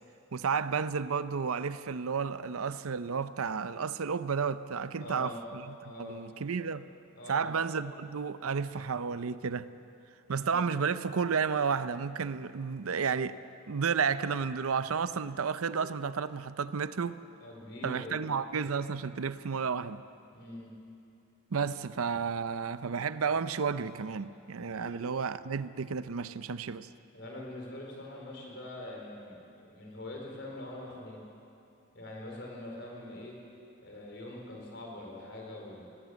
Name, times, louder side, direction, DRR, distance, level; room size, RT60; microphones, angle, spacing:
voice 1, 0.3-6.9 7.3-9.7 10.3-13.4 13.7-17.2 17.8-20.0 21.5-26.9, right 6 dB, 85° right, 0.6 m, -32 dB
voice 2, 5.0-5.4 5.8-6.2 7.2-7.5 10.3-10.6 17.4-18.3 20.3-20.7 24.7-24.9 27.1-29.4 29.7-31.2 31.9-33.4 33.8-35.8, left 1 dB, 55° left, 4.4 m, -43 dB
19.5 x 16.0 x 8.2 m
head